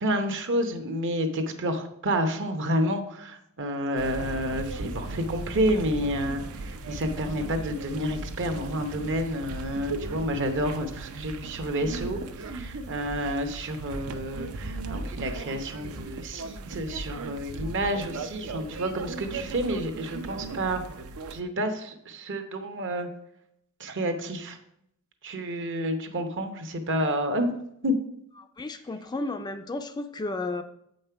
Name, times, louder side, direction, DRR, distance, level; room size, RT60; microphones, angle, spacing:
voice 1, 0.0-20.8 21.3-23.1 23.8-24.6 25.2-27.5 27.8-27.9, equal, 60° right, 7 dB, 0.9 m, -29 dB
sound 1, 4.0-21.4, right 3 dB, 75° right, 0.6 m, -37 dB
voice 2, 28.6-30.6, left 2 dB, 20° left, 9 dB, 0.4 m, -33 dB
7.6 x 5.4 x 4.5 m, 0.75 s
head